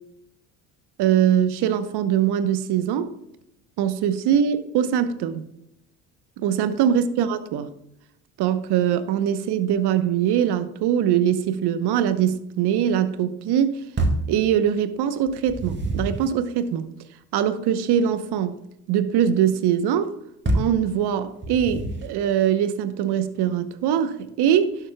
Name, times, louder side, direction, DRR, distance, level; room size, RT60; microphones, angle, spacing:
voice 1, 1.0-3.1 3.8-5.5 6.4-7.7 8.4-13.8 14.3-16.9 17.3-18.6 18.9-20.1 20.5-24.8, right 9 dB, 65° right, 1.0 m, -22 dB
sound 1, 14.0-14.4 15.3-16.3 20.5-20.8 21.4-22.2, right 2 dB, 25° right, 2.2 m, -26 dB
12.0 x 7.0 x 2.3 m
supercardioid pair, 75°, 42 cm